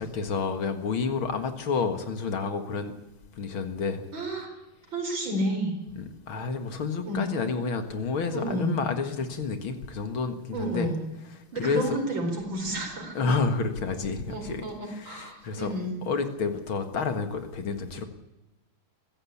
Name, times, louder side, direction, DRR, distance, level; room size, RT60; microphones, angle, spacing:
voice 1, 0.0-2.9 3.4-4.0 6.3-10.9 11.6-12.0 13.1-14.6 15.0-15.7 16.1-18.0, left 4 dB, 70° left, 8 dB, 2.6 m, -29 dB
voice 2, 4.1-4.5 4.9-5.8 7.0-7.2 8.3-8.8 10.5-11.0 11.5-13.1 14.3-15.9, right 1 dB, 60° right, 3 dB, 5.1 m, -30 dB
23.0 x 15.5 x 8.6 m, 0.97 s
omnidirectional pair, 2.4 m